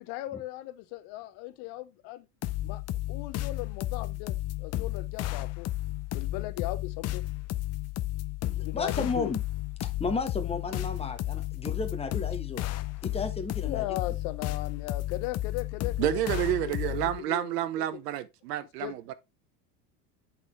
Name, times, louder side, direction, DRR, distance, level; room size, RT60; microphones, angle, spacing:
voice 1, 0.0-2.3 2.6-2.8 3.1-5.7 6.1-7.2 8.5-9.3 13.6-16.2 16.5-18.0 18.8-18.9, left 16 dB, 55° left, 0.9 m, -38 dB
sound 1, 2.4-17.2, left 16 dB, 35° left, 0.5 m, -33 dB
voice 2, 8.5-9.4 10.0-12.6 13.0-13.8, left 3 dB, 10° left, 1.2 m, -33 dB
voice 3, 16.0-19.1, right 13 dB, 75° right, 1.0 m, -29 dB
8.2 x 4.2 x 3.2 m
hypercardioid pair, 85°, 47 cm